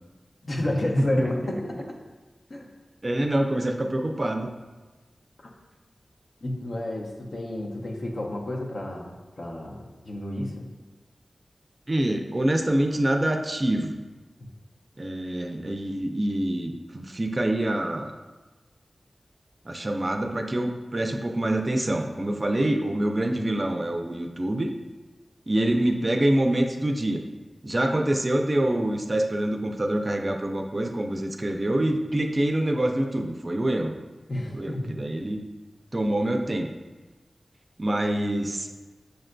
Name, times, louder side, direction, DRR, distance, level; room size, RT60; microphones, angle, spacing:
voice 1, 0.4-2.0 2.5-2.7 5.4-5.5 6.4-10.6 34.3-35.0, left 1 dB, 65° left, -1 dB, 0.6 m, -31 dB
voice 2, 3.0-4.5 11.9-14.0 15.0-18.1 19.7-24.7 25.5-27.2 27.6-34.0 34.5-35.4 35.9-36.7 37.8-38.7, right 1 dB, 40° right, 4 dB, 0.4 m, -26 dB
6.4 x 2.4 x 2.2 m, 1.2 s
wide cardioid pair, 55°, 0 cm